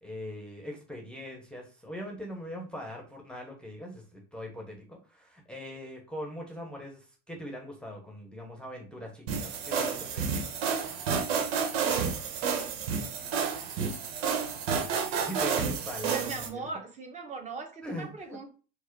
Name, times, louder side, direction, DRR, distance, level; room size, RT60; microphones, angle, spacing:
voice 1, 0.0-10.4 15.2-16.7 17.8-18.4, equal, 5° left, 0 dB, 1.0 m, -41 dB
sound 1, 9.3-16.5, right 6 dB, 75° right, 1.0 m, -30 dB
voice 2, 16.1-18.5, right 4 dB, 20° right, 3 dB, 1.1 m, -39 dB
4.6 x 2.0 x 4.5 m, 0.36 s
supercardioid pair, 115°, 31 cm